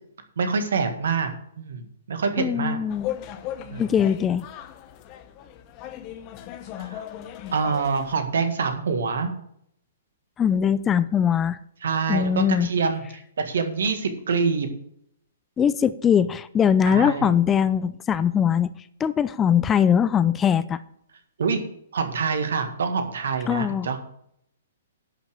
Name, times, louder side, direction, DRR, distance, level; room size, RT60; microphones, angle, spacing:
voice 1, 0.4-2.8 3.7-3.9 6.8-7.0 7.5-9.3 11.8-14.7 16.9-17.3 21.4-21.6 21.9-24.0, right 5 dB, 65° right, 7 dB, 1.7 m, -26 dB
voice 2, 2.4-3.1 3.8-4.5 10.4-11.6 12.1-12.7 15.6-18.7 19.0-20.8 23.5-23.9, left 8 dB, 20° left, 15 dB, 0.5 m, -21 dB
sound 1, 2.9-8.2, left 11 dB, 35° left, 1.1 m, -37 dB
11.0 x 5.8 x 6.6 m, 0.70 s
figure-of-eight pair, 120°, 0 cm